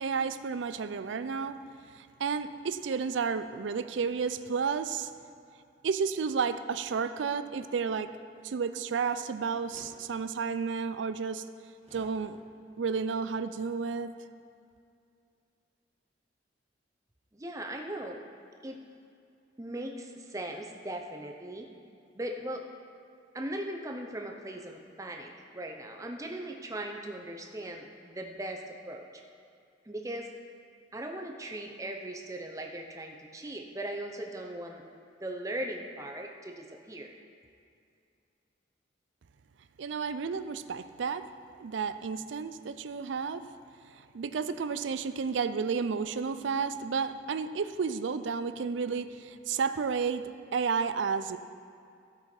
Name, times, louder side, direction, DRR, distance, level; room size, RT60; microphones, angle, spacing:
voice 1, 0.0-1.6 2.0-5.1 5.8-8.1 8.4-11.4 11.9-12.4 12.8-14.1 39.8-41.2 41.6-43.4 44.1-51.4, right 5 dB, 85° right, 12 dB, 0.4 m, -32 dB
sound 1, 9.6-10.0 11.8-12.2, right 1 dB, 35° right, 1.2 m, -52 dB
voice 2, 17.3-18.2 18.6-18.8 19.6-21.7 22.1-22.6 23.3-29.1 29.8-30.3 30.9-34.8 35.2-37.1, right 1 dB, 15° right, 2 dB, 0.6 m, -39 dB
15.5 x 5.6 x 4.4 m, 2.4 s
head